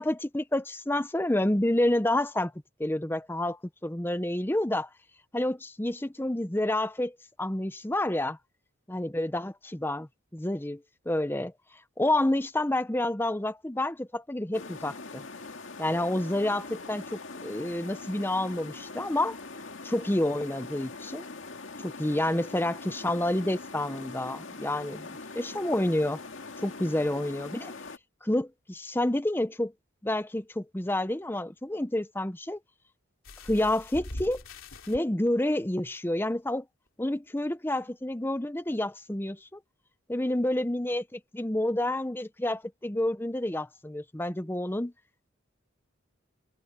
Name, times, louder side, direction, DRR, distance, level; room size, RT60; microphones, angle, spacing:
voice 1, 0.0-2.5 2.8-4.9 5.3-8.4 8.9-10.8 11.1-11.5 12.0-15.2 15.8-19.4 19.8-21.3 21.8-26.2 26.6-27.7 28.2-29.7 30.0-32.6 33.4-34.4 34.9-36.6 37.0-39.6 40.1-44.9, left 1 dB, 10° left, 0.7 m, -29 dB
sound 1, 14.5-28.0, left 3 dB, 70° left, 2.1 m, -42 dB
sound 2, 33.2-35.0 36.0-36.1 36.5-36.6, left 1 dB, 85° left, 3.1 m, -41 dB
head